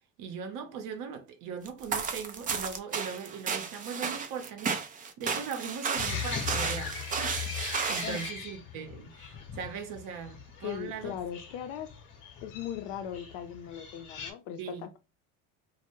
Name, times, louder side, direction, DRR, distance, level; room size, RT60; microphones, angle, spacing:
voice 1, 0.2-4.9 5.2-11.1 14.6-14.9, right 6 dB, 60° right, 0.8 m, -39 dB
sound 1, 1.7-8.3, right 5 dB, 25° right, 0.4 m, -33 dB
sound 2, 5.9-14.3, left 7 dB, 55° left, 0.9 m, -40 dB
voice 2, 10.6-11.9 12.4-15.0, left 10 dB, 85° left, 0.6 m, -38 dB
2.2 x 2.1 x 3.0 m
supercardioid pair, 90°, 36 cm